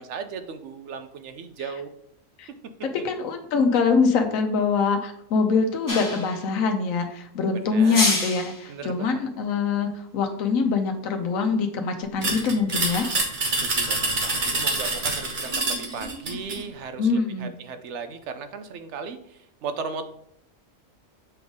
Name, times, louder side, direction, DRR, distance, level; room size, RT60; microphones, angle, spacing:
voice 1, 0.0-1.9 7.5-8.0 8.7-9.2 13.6-20.0, right 5 dB, 65° right, 9 dB, 0.9 m, -36 dB
voice 2, 3.0-13.1 17.0-17.5, left 5 dB, 85° left, 5 dB, 1.1 m, -24 dB
sound 1, 5.9-6.4 7.8-8.6, left 2 dB, 20° left, 0.8 m, -26 dB
sound 2, 12.2-16.6, right 2 dB, 40° right, 1.2 m, -26 dB
6.8 x 3.9 x 3.6 m, 0.71 s
omnidirectional pair, 1.4 m